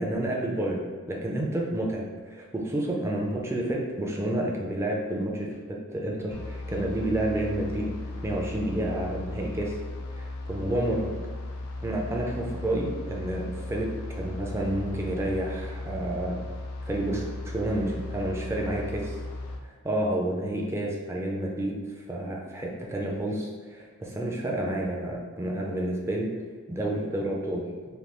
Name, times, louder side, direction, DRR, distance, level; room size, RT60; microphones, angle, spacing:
voice 1, 0.0-9.8 10.1-11.1 11.8-16.4 16.9-19.2 19.8-26.3 26.7-27.7, right 1 dB, 10° right, -2 dB, 0.4 m, -30 dB
sound 1, 6.3-19.6, left 2 dB, 85° left, 0.4 m, -37 dB
3.2 x 2.2 x 2.9 m, 1.5 s
head